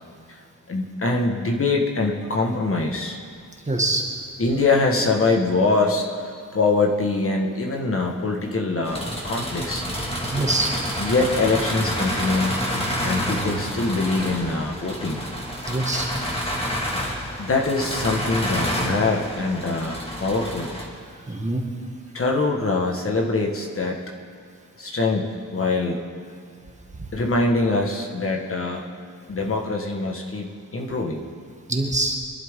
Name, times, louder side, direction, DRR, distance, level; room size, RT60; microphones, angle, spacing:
voice 1, 0.7-3.2 4.4-9.8 11.0-12.6 13.0-15.2 17.4-20.7 22.1-24.0 24.8-26.0 27.1-28.8 29.3-31.2, left 3 dB, 40° left, 0 dB, 1.5 m, -23 dB
voice 2, 3.7-4.0 10.3-10.7 15.6-16.1 21.3-21.6 31.7-32.2, right 2 dB, 20° right, 0 dB, 1.8 m, -24 dB
sound 1, 8.8-20.9, equal, 15° left, 2.1 m, -28 dB
24.5 x 11.5 x 3.7 m, 2.4 s
wide cardioid pair, 130°, 33 cm